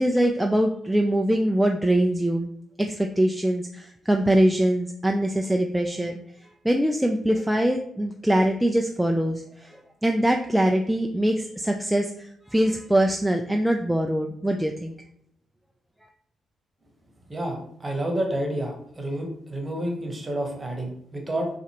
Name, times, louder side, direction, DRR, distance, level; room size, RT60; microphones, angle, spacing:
voice 1, 0.0-2.5 2.8-6.2 6.6-9.8 10.0-12.1 12.5-14.9, right 1 dB, 5° right, 2 dB, 0.3 m, -23 dB
voice 2, 17.3-21.5, right 1 dB, 25° right, 2 dB, 1.0 m, -29 dB
4.2 x 2.4 x 2.9 m, 0.72 s
cardioid pair, 70°, 0 cm